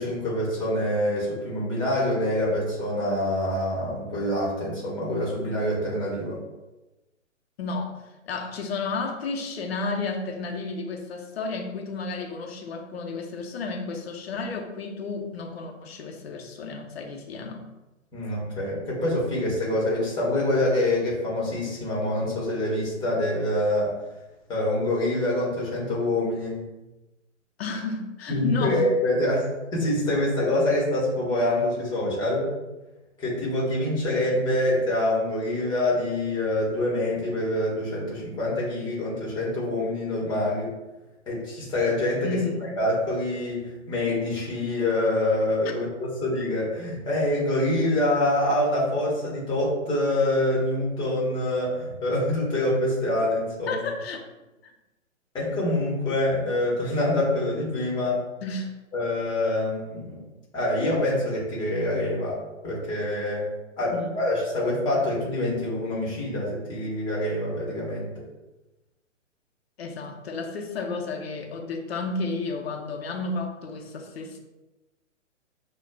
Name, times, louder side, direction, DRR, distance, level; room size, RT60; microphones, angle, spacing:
voice 1, 0.0-6.4 18.1-23.9 24.5-26.6 28.3-29.5 29.7-32.5 33.2-40.7 41.3-42.4 42.8-53.9 55.3-58.2 58.9-60.2 60.5-62.4 62.6-63.5 63.8-68.2, left 1 dB, 10° left, -5 dB, 1.1 m, -25 dB
voice 2, 7.6-17.7 27.6-28.8 42.2-42.7 53.7-54.2 54.6-54.7 58.4-58.7 63.9-64.2 69.8-74.4, left 3 dB, 55° left, 2 dB, 0.7 m, -32 dB
6.1 x 2.3 x 2.2 m, 1.0 s
hypercardioid pair, 140°, 38 cm